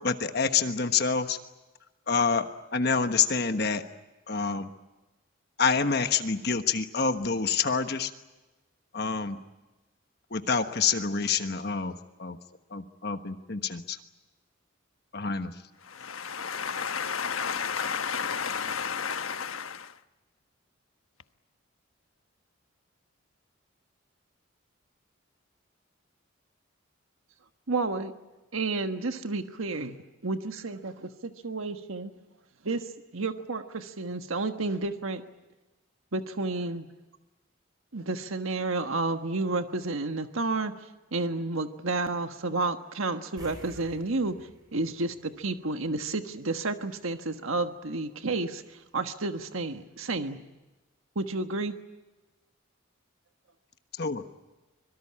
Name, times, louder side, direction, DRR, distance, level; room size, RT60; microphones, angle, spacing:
voice 1, 0.0-1.4 2.1-3.8 4.3-4.7 5.6-8.1 8.9-9.4 10.3-11.9 12.2-12.4 12.7-14.0 15.1-15.5 54.0-54.2, left 5 dB, 50° left, 8 dB, 1.3 m, -27 dB
voice 2, 15.9-19.9, left 6 dB, 85° left, 9 dB, 1.2 m, -32 dB
voice 3, 27.7-28.1 28.5-30.0 30.2-32.1 32.6-35.2 36.1-36.9 37.9-44.3 44.7-50.4 51.1-51.8, right 3 dB, 85° right, 7 dB, 1.5 m, -31 dB
sound 1, 43.4-46.2 46.5-46.6 49.5-49.6 50.0-50.1, right 1 dB, 20° right, 8.0 m, -51 dB
25.5 x 23.0 x 8.7 m, 1.1 s
head